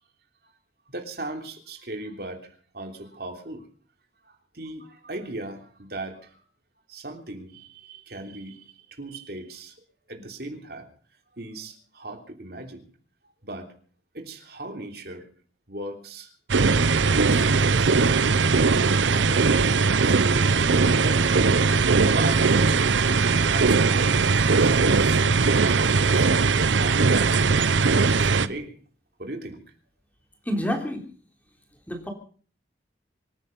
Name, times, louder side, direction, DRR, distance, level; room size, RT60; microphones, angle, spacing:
voice 1, 0.9-3.6 4.2-6.4 6.9-9.7 10.1-10.9 11.4-12.9 13.4-13.7 14.1-15.2 15.7-16.3 17.1-18.3 18.7-20.5 21.0-21.4 22.1-22.5 22.8-25.2 25.6-26.5 26.8-27.6 28.2-28.8 29.2-29.6, right 2 dB, 55° right, 4 dB, 3.3 m, -37 dB
sound 1, 16.5-28.5, right 4 dB, 85° right, 0.8 m, -20 dB
voice 2, 30.4-31.0 31.9-32.1, equal, 10° left, 3 dB, 3.3 m, -28 dB
25.5 x 10.0 x 5.4 m, 0.44 s
head